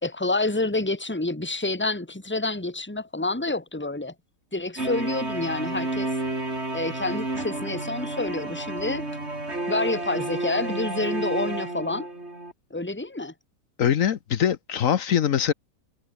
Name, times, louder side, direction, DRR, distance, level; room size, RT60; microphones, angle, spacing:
voice 1, 0.0-4.1 4.5-6.1 6.7-9.1 9.7-12.1 12.7-13.3, left 2 dB, 5° left, 2.5 m, -28 dB
sound 1, 4.8-12.5, right 2 dB, 35° right, 5.4 m, -31 dB
voice 2, 13.8-15.5, left 9 dB, 55° left, 1.1 m, -22 dB
omnidirectional pair, 1.9 m